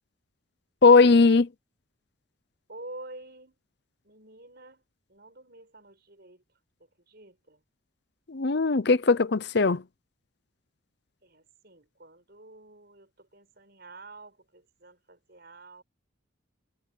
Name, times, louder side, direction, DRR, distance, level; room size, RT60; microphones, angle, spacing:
voice 1, 0.8-1.5 8.3-9.8, left 4 dB, 55° left, 0.7 m, -19 dB
voice 2, 2.7-3.6 4.0-4.8 5.1-6.4 6.8-7.6 11.2-15.8, right 2 dB, 50° right, 6.3 m, -48 dB
head